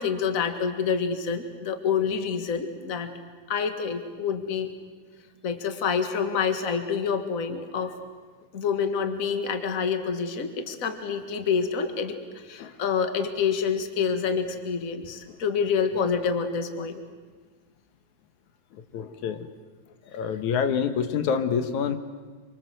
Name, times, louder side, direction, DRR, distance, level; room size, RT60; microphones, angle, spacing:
voice 1, 0.0-3.1 3.5-4.7 5.4-8.0 8.5-17.0, left 6 dB, 35° left, 7 dB, 1.8 m, -27 dB
voice 2, 18.9-19.4 20.1-22.0, left 7 dB, 85° left, 9 dB, 2.6 m, -26 dB
26.0 x 25.0 x 7.8 m, 1.5 s
omnidirectional pair, 3.3 m